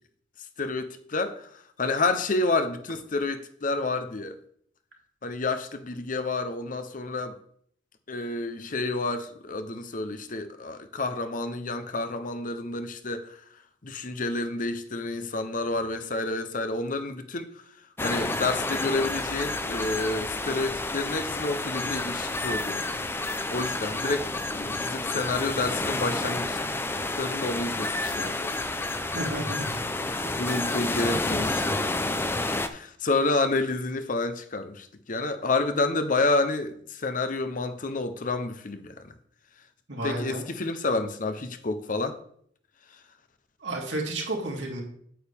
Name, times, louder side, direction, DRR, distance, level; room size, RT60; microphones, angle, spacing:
voice 1, 0.6-1.5 1.8-4.3 5.2-7.3 8.1-13.3 13.8-17.5 18.0-22.8 23.5-26.6 27.2-28.5 30.0-38.9 40.0-42.2, left 3 dB, 45° left, 0.8 m, -29 dB
sound 1, 18.0-32.7, left 2 dB, 15° left, 0.5 m, -30 dB
voice 2, 29.1-29.7 30.2-30.3 39.9-40.4 43.6-44.8, right 1 dB, 75° right, 2.9 m, -31 dB
8.8 x 8.7 x 3.5 m
head